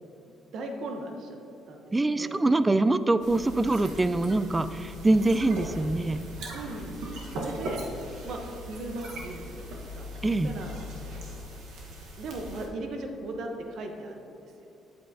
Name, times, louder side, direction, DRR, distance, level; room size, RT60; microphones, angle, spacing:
voice 1, 0.5-1.4 1.7-2.3 6.4-7.8 8.3-8.4 8.7-10.1 10.4-11.2 12.2-14.7, right 2 dB, 70° right, 3 dB, 0.9 m, -38 dB
voice 2, 1.9-6.2 10.2-10.5, right 2 dB, 20° right, 13 dB, 0.3 m, -24 dB
sound 1, 3.2-12.7, equal, 85° right, 1.2 m, -39 dB
9.1 x 7.6 x 2.7 m, 2.9 s
cardioid pair, 90°, 0 cm